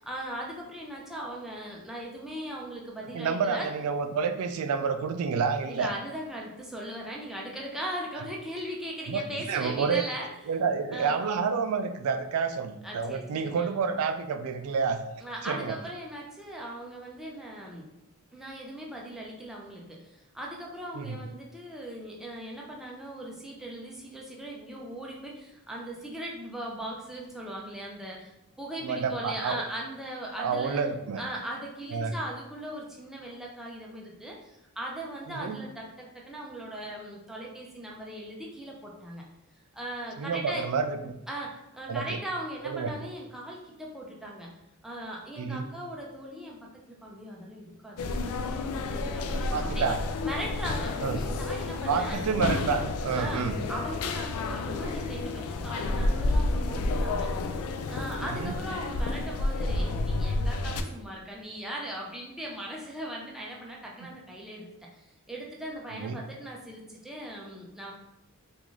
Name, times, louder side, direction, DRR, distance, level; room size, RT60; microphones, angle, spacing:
voice 1, 0.0-3.7 5.7-10.3 10.9-11.2 12.8-13.7 15.2-17.9 18.3-30.8 31.2-39.2 39.7-40.6 41.3-44.5 44.8-46.6 46.9-49.9 50.2-52.2 53.1-57.3 57.9-64.7 64.9-67.9, right 1 dB, ahead, -3 dB, 0.5 m, -39 dB
voice 2, 3.1-5.9 9.1-10.0 10.5-15.0 15.4-15.8 20.9-21.2 28.8-29.6 30.4-31.2 31.9-32.1 35.3-35.6 40.2-41.2 41.9-42.2 42.6-42.9 45.4-45.7 49.5-50.0 51.0-51.2 51.9-53.6 58.2-58.5 64.0-64.1 65.9-66.2, right 5 dB, 80° right, 9 dB, 0.3 m, -29 dB
sound 1, 48.0-60.8, left 2 dB, 85° left, 0.3 m, -30 dB
3.7 x 2.5 x 3.0 m, 0.88 s
head